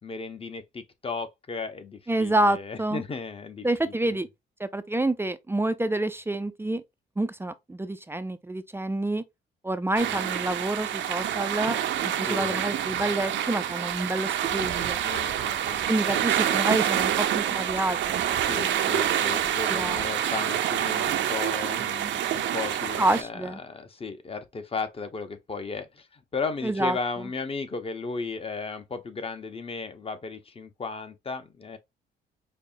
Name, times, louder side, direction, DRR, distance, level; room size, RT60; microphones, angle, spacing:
voice 1, 0.0-4.2 10.0-10.3 12.2-12.6 15.0-16.4 18.5-31.8, left 4 dB, 30° left, 0.7 m, -35 dB
voice 2, 2.1-3.0 3.6-4.3 4.6-6.8 7.2-9.2 9.6-15.0 15.9-18.2 18.5-19.0 19.3-19.4 19.7-20.1 23.0-23.6 26.6-27.0, right 1 dB, 10° right, 0.3 m, -28 dB
sound 1, 10.0-23.2, right 10 dB, 70° right, 0.6 m, -27 dB
5.3 x 2.1 x 2.6 m
cardioid pair, 90°, 20 cm